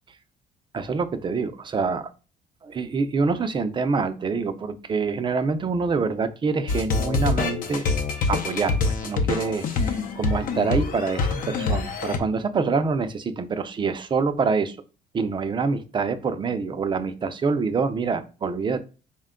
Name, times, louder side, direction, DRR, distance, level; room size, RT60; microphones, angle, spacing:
voice 1, 0.7-2.1 2.6-7.9 8.3-14.8 15.1-18.8, right 4 dB, 30° right, 10 dB, 0.4 m, -26 dB
sound 1, 6.7-12.2, left 4 dB, 55° left, 0.6 m, -25 dB
4.3 x 2.2 x 3.6 m, 0.34 s
cardioid pair, 110°, 17 cm